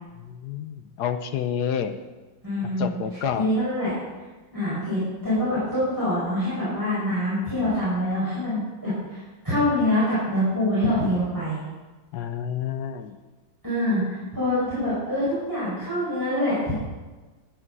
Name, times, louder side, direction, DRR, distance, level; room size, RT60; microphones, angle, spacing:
voice 1, 0.2-2.0 2.8-3.5 12.1-13.2, left 8 dB, 65° left, 9 dB, 1.2 m, -29 dB
voice 2, 2.4-2.9 3.3-3.9 4.5-11.6 13.6-16.7, left 1 dB, 10° right, -11 dB, 5.2 m, -25 dB
12.5 x 9.5 x 6.1 m, 1.2 s
omnidirectional pair, 2.2 m